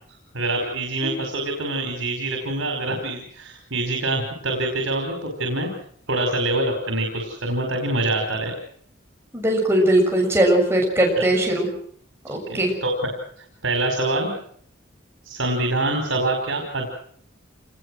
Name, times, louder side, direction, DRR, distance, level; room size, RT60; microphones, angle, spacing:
voice 1, 0.3-5.7 6.1-8.5 12.3-13.1 13.6-14.3 15.2-16.9, right 2 dB, 80° right, 3 dB, 5.1 m, -25 dB
voice 2, 9.3-11.7 12.3-12.7, right 1 dB, 15° right, 0 dB, 7.0 m, -19 dB
28.0 x 20.5 x 6.4 m, 0.63 s
head